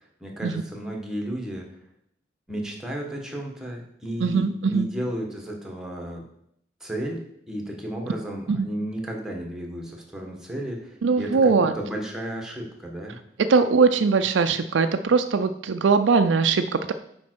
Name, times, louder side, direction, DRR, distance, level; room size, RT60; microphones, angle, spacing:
voice 1, 0.0-1.7 2.5-6.2 6.8-7.2 7.5-13.2, right 1 dB, 5° right, 0 dB, 1.4 m, -33 dB
voice 2, 4.2-4.9 8.5-8.7 11.0-11.7 13.4-16.9, right 4 dB, 80° right, 8 dB, 0.4 m, -21 dB
7.2 x 5.1 x 4.6 m, 0.72 s
head